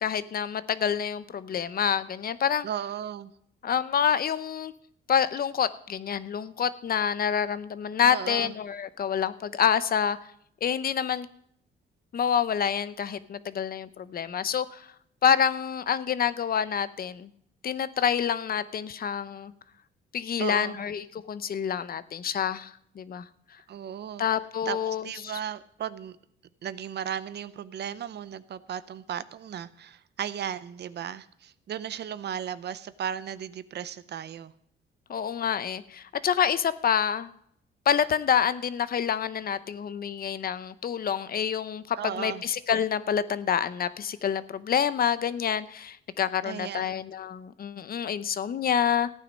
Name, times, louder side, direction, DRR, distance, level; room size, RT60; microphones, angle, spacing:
voice 1, 0.0-2.7 3.6-4.7 5.1-10.2 10.6-11.3 12.1-14.9 15.2-17.3 17.6-19.5 20.1-23.2 24.2-25.3 35.1-37.3 37.9-49.1, left 8 dB, 50° left, 15 dB, 0.7 m, -27 dB
voice 2, 2.6-3.3 8.0-8.5 20.4-20.8 23.7-24.2 24.7-26.2 26.6-34.5 42.0-42.4 46.4-46.9, right 9 dB, 60° right, 15 dB, 0.7 m, -35 dB
14.5 x 9.3 x 5.3 m, 0.69 s
cardioid pair, 90°, 20 cm